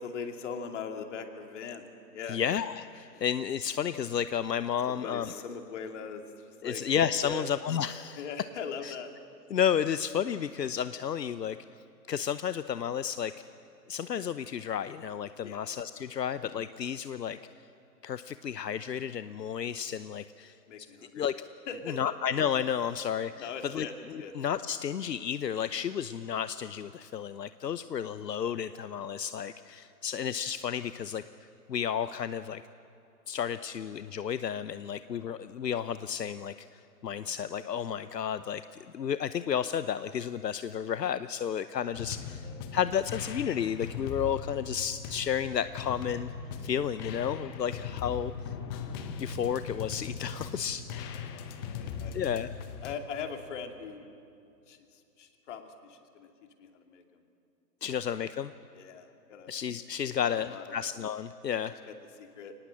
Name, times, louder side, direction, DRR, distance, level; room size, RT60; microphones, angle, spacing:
voice 1, 0.0-1.9 2.1-2.4 3.1-3.2 4.9-6.9 7.2-7.5 8.2-9.1 15.4-15.7 20.7-21.2 21.7-22.0 23.4-24.3 41.9-42.0 42.4-42.6 51.1-52.5 52.8-54.1 54.7-56.3 56.6-57.2 58.7-59.5 60.0-60.8 61.9-62.6, left 6 dB, 45° left, 5 dB, 2.5 m, -41 dB
voice 2, 2.3-5.3 6.6-8.2 8.8-8.9 9.5-11.6 12.1-13.3 13.9-17.4 18.0-20.6 21.1-21.3 21.9-31.2 31.7-32.6 33.3-46.3 46.6-48.5 49.2-50.8 52.1-52.5 57.8-58.5 59.5-61.7, left 8 dB, 80° left, 13 dB, 0.8 m, -32 dB
sound 1, 41.9-52.9, left 6 dB, 15° left, 0.7 m, -39 dB
24.5 x 19.0 x 7.6 m, 2.6 s
figure-of-eight pair, 130°, 49 cm